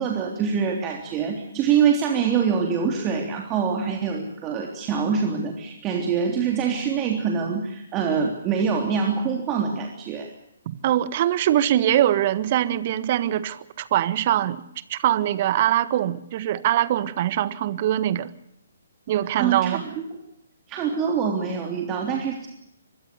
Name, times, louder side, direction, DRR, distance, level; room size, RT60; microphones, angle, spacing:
voice 1, 0.0-10.3 19.4-19.8 20.7-22.5, right 6 dB, 20° right, 3.4 m, -24 dB
voice 2, 10.6-14.6 14.9-18.3 19.1-19.8, right 12 dB, 40° right, 1.5 m, -23 dB
25.0 x 22.5 x 6.7 m
figure-of-eight pair, 135°, 0 cm